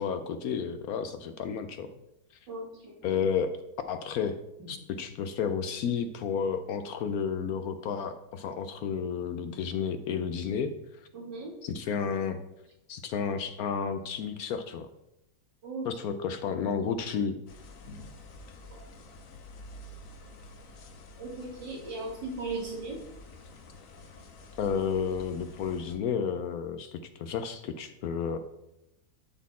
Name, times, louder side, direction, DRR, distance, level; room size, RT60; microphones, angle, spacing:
voice 1, 0.0-1.9 3.0-3.6 3.9-4.4 4.7-10.8 11.6-12.4 12.9-14.9 15.8-17.4 24.6-28.4, left 6 dB, 70° left, 9 dB, 0.9 m, -31 dB
voice 2, 2.5-3.0 4.6-4.7 11.1-11.5 15.6-15.9 18.7-18.8 21.2-23.0, right 3 dB, 90° right, -1 dB, 2.7 m, -37 dB
sound 1, 17.5-26.0, left 2 dB, 55° left, 1.2 m, -49 dB
12.0 x 4.2 x 4.2 m, 0.88 s
omnidirectional pair, 1.9 m